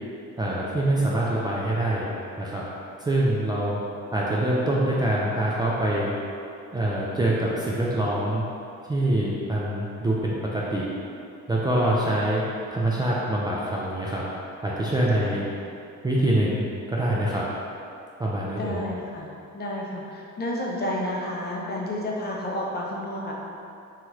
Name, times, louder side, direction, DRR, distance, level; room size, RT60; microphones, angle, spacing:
voice 1, 0.4-2.1 2.4-2.6 3.0-3.8 4.1-6.1 6.7-8.4 8.9-10.9 11.5-12.4 12.7-14.2 14.6-15.4 16.0-17.5 18.2-18.8, right 1 dB, 15° right, -6 dB, 0.3 m, -25 dB
voice 2, 18.5-19.3 19.5-23.3, left 1 dB, 35° left, -3 dB, 0.5 m, -31 dB
3.0 x 2.4 x 2.9 m, 2.6 s
cardioid pair, 90°, 30 cm